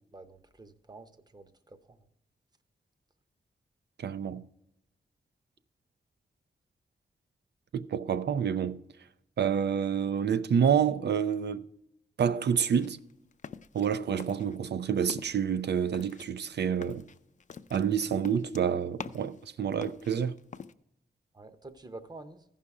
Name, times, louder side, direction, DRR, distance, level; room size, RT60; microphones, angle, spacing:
voice 1, 0.1-2.0 21.3-22.4, right 2 dB, 25° right, 0.8 m, -48 dB
voice 2, 4.0-4.4 7.7-8.8 9.4-11.7 12.2-13.0 13.7-17.0 17.7-20.4, right 7 dB, 80° right, 0.5 m, -28 dB
sound 1, 12.7-13.9 14.2-14.7 15.0-15.4 15.9-19.4 19.7-20.7, left 6 dB, 45° left, 0.4 m, -44 dB
15.0 x 5.6 x 4.8 m
wide cardioid pair, 115°, 17 cm